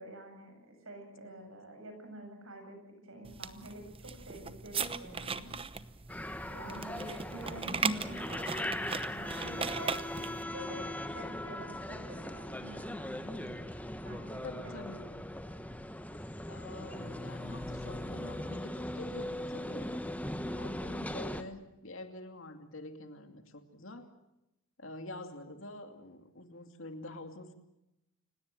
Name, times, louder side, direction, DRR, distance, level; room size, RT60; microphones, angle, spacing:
voice 1, 0.0-5.5 6.5-13.5 14.0-14.7, right 1 dB, 65° right, 5 dB, 7.7 m, -48 dB
voice 2, 1.2-1.6 6.6-7.0 14.4-15.1 16.5-19.9 20.5-24.1 24.8-27.5, left 2 dB, 60° left, 7 dB, 2.6 m, -47 dB
sound 1, 3.2-10.4, right 5 dB, 25° right, 0.9 m, -38 dB
sound 2, 6.1-21.4, left 1 dB, 5° left, 1.1 m, -39 dB
29.5 x 18.0 x 7.7 m, 0.89 s
head